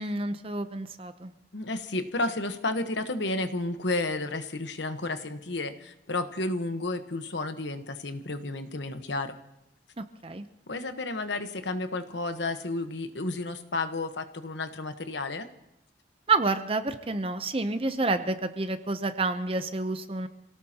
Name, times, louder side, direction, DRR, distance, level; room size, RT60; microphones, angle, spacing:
voice 1, 0.0-1.3 10.0-10.5 16.3-20.3, right 3 dB, 30° right, 10 dB, 0.7 m, -29 dB
voice 2, 1.5-9.4 10.7-15.5, left 2 dB, 75° left, 8 dB, 1.2 m, -32 dB
28.0 x 17.5 x 2.9 m, 0.87 s
head